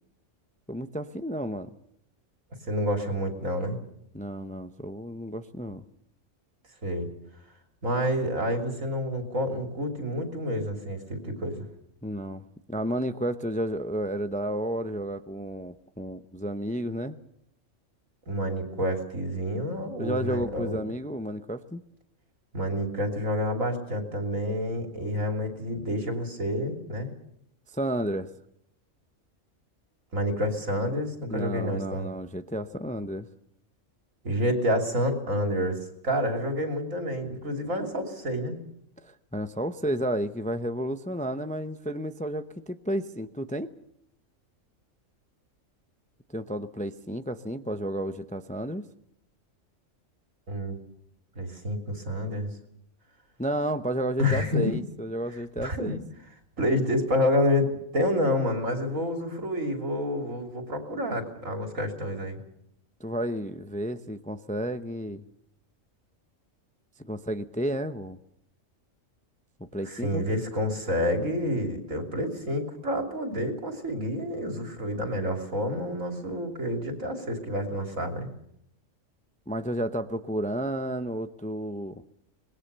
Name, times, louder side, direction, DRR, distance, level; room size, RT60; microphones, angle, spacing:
voice 1, 0.7-1.7 4.1-5.8 12.0-17.2 20.0-21.8 27.7-28.3 31.3-33.3 39.0-43.7 46.3-48.8 53.4-56.0 63.0-65.2 67.0-68.2 69.7-70.3 79.5-82.0, right 1 dB, 10° left, 9 dB, 0.6 m, -32 dB
voice 2, 2.7-3.8 6.8-7.1 7.8-11.6 18.3-20.8 22.5-27.1 30.1-32.1 34.2-38.6 50.5-50.8 51.3-52.5 54.2-54.7 55.6-55.9 56.6-62.4 69.9-78.3, left 1 dB, 85° right, 4 dB, 3.5 m, -28 dB
25.0 x 20.5 x 6.8 m, 0.75 s
omnidirectional pair, 1.3 m